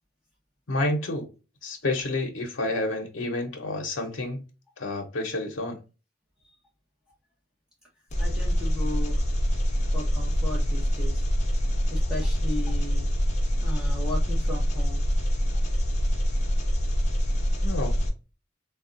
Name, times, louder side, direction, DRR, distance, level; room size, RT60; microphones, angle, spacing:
voice 1, 0.7-1.3 1.6-4.5 4.8-5.8 17.6-18.0, left 2 dB, 85° left, 0.8 m, -29 dB
Engine, 8.1-18.1, equal, 35° left, 0.7 m, -25 dB
voice 2, 8.2-9.3 9.9-11.2 11.9-13.1 13.6-15.0, left 1 dB, 5° right, 0.8 m, -36 dB
3.3 x 2.3 x 2.5 m
head